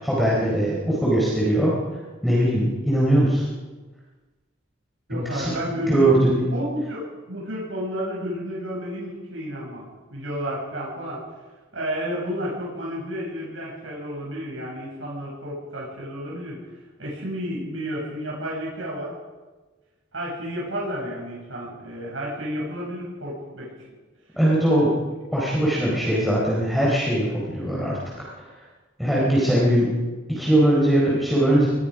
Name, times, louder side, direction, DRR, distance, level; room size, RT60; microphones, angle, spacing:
voice 1, 0.0-1.7 2.2-3.4 5.1-5.5 5.9-6.4 24.4-24.9 25.3-28.0 29.0-29.9 30.3-31.7, right 1 dB, ahead, -6 dB, 4.6 m, -20 dB
voice 2, 5.1-9.8 10.1-11.2 11.7-16.6 17.0-19.2 20.1-23.7, equal, 75° right, -4 dB, 7.3 m, -31 dB
26.5 x 20.5 x 5.1 m, 1.3 s
head